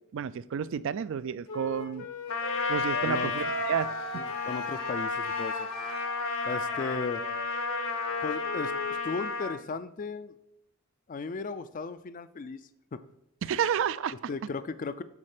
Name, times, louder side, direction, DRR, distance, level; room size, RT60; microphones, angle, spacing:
voice 1, 0.1-2.1 2.7-3.9 13.4-14.1, right 8 dB, 60° right, 16 dB, 0.3 m, -30 dB
Wind instrument woodwind instrument, 1.5-9.0, left 2 dB, 85° left, 1.5 m, -38 dB
Trumpet, 2.3-9.6, left 4 dB, 60° left, 0.8 m, -33 dB
voice 2, 3.0-3.3 4.1-5.7 6.5-7.2 8.2-8.7 9.0-10.4 11.1-12.6 12.9-13.0 14.3-15.0, left 4 dB, 35° left, 13 dB, 0.4 m, -36 dB
9.8 x 4.3 x 4.9 m, 0.85 s
head